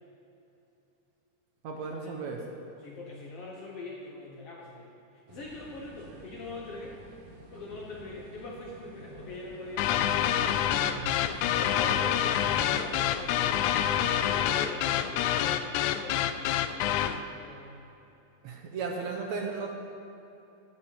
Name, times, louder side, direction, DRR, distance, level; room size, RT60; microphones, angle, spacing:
voice 1, 1.6-2.6 10.9-11.1 18.4-19.7, right 4 dB, 65° right, 1 dB, 2.0 m, -35 dB
voice 2, 2.8-6.9 7.5-9.9 10.7-13.6 14.2-17.8 18.9-19.3, left 2 dB, 60° left, -2 dB, 1.7 m, -43 dB
sound 1, 5.3-13.9, right 3 dB, 90° right, 3.0 m, -50 dB
sound 2, 9.8-17.2, left 10 dB, 80° left, 1.7 m, -27 dB
10.0 x 7.5 x 8.4 m, 2.9 s
omnidirectional pair, 3.8 m